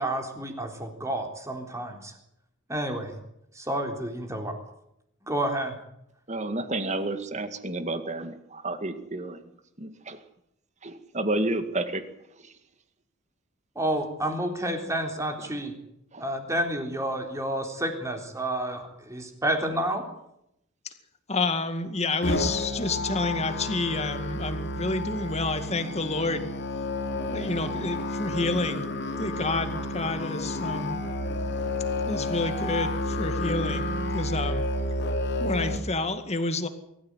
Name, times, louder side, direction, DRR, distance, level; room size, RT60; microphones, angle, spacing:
voice 1, 0.0-2.1 2.7-3.1 3.6-4.5 5.2-5.8 13.8-15.7 16.2-20.0, right 1 dB, 15° right, 3 dB, 3.8 m, -30 dB
voice 2, 6.3-9.5 9.8-10.2 10.8-12.0 12.4-12.5 16.1-16.2, right 2 dB, 35° right, 9 dB, 2.1 m, -31 dB
voice 3, 21.3-26.5 27.3-28.9 29.2-31.0 32.1-34.7 35.4-36.7, left 3 dB, 30° left, 9 dB, 2.1 m, -29 dB
Musical instrument, 22.2-35.8, left 1 dB, 55° left, 2.8 m, -30 dB
23.0 x 14.5 x 9.8 m, 0.79 s
head